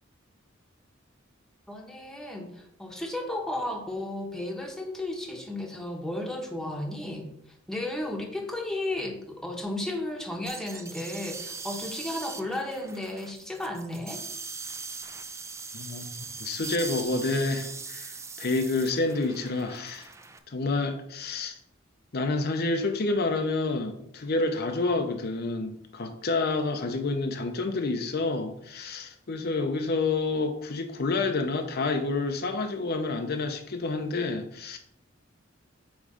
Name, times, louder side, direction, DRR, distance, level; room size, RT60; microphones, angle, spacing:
voice 1, 1.7-7.3 7.7-14.2, left 1 dB, 5° left, 1 dB, 1.0 m, -34 dB
sound 1, 10.5-20.4, right 4 dB, 15° right, 0.5 m, -40 dB
voice 2, 15.7-20.1 20.5-21.6 22.1-34.8, left 3 dB, 50° left, 5 dB, 0.7 m, -29 dB
8.5 x 3.2 x 5.0 m, 0.73 s
head